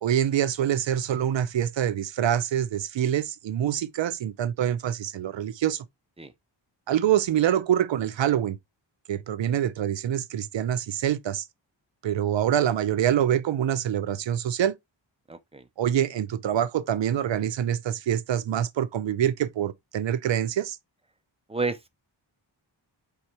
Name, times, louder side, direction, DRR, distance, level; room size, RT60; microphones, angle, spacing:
voice 1, 0.0-5.9 6.9-8.6 9.1-11.5 12.0-14.8 15.8-20.8, right 10 dB, 70° right, 0.5 m, -25 dB
voice 2, 15.3-15.7 21.5-21.9, right 3 dB, 15° right, 0.4 m, -31 dB
4.7 x 3.6 x 2.8 m
wide cardioid pair, 140°, 47 cm